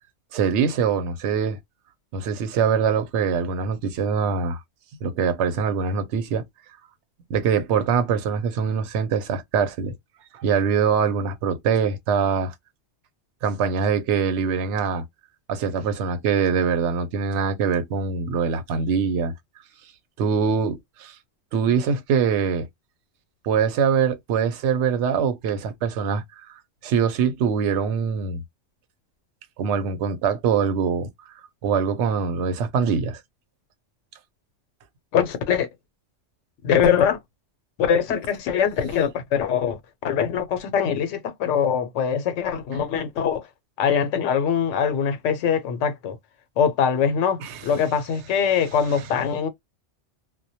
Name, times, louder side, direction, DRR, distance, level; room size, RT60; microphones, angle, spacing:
voice 1, 0.3-1.6 2.1-4.6 5.0-6.4 7.3-9.9 10.3-12.5 13.4-15.0 15.5-19.3 20.2-21.1 21.5-22.7 23.4-26.5 26.8-28.4 29.6-31.1 31.6-33.2 47.4-47.6, right 6 dB, 75° right, 0.9 m, -23 dB
voice 2, 35.1-35.7 36.6-37.2 37.8-43.5 43.8-46.2 46.6-49.5, left 7 dB, 90° left, 0.9 m, -22 dB
2.1 x 2.1 x 2.7 m
omnidirectional pair, 1.2 m